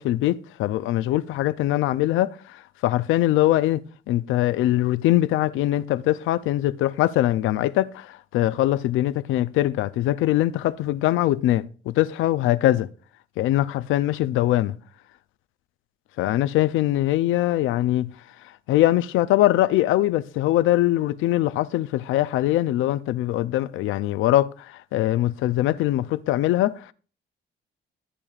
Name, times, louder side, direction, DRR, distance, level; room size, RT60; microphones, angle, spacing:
voice 1, 0.0-3.8 4.1-12.9 13.4-14.7 16.2-18.1 18.7-26.9, left 14 dB, 85° left, 0.5 m, -22 dB
13.5 x 8.6 x 2.4 m
cardioid pair, 90°, 20 cm